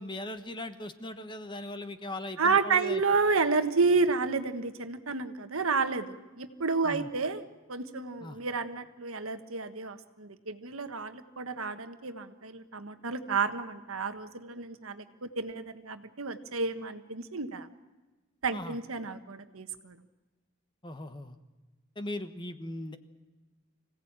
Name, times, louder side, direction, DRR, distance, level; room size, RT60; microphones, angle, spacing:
voice 1, 0.0-3.0 6.8-7.1 8.2-8.4 18.5-18.8 20.8-21.4 22.0-23.0, left 1 dB, 20° left, 9 dB, 1.2 m, -39 dB
voice 2, 2.4-7.4 7.7-17.7 18.4-20.0, right 4 dB, 80° right, 9 dB, 1.4 m, -30 dB
25.5 x 17.0 x 8.9 m, 1.2 s
head